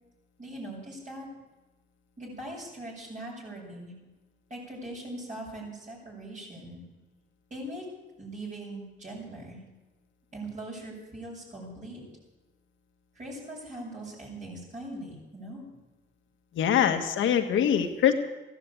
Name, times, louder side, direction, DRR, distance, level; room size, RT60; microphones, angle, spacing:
voice 1, 0.4-1.3 2.2-3.9 4.5-6.8 7.5-7.8 8.2-9.6 10.3-12.0 13.2-15.6, right 1 dB, 40° right, -4 dB, 7.5 m, -41 dB
voice 2, 16.6-18.1, left 9 dB, 75° left, 6 dB, 1.7 m, -23 dB
15.5 x 10.5 x 8.6 m, 1.1 s
cardioid pair, 90°, 20 cm